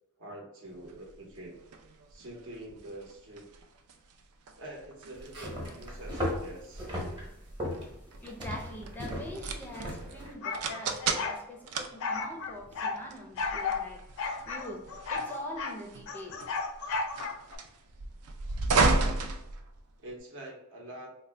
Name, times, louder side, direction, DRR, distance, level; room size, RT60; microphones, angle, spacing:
voice 1, 0.2-1.6 2.1-3.5 4.6-6.9 20.0-21.2, right 1 dB, 60° right, 0 dB, 0.8 m, -45 dB
sound 1, 0.8-20.2, right 3 dB, 75° right, 0.4 m, -35 dB
sound 2, 5.2-10.3, left 1 dB, 20° right, 0.9 m, -37 dB
voice 2, 8.2-14.1 14.5-16.4, left 1 dB, 10° left, 0 dB, 0.4 m, -43 dB
sound 3, 10.4-11.4 12.0-13.0 13.4-13.8 14.2-15.8 16.1-17.6, left 4 dB, 65° left, 0.4 m, -34 dB
3.7 x 2.1 x 3.2 m, 0.83 s
head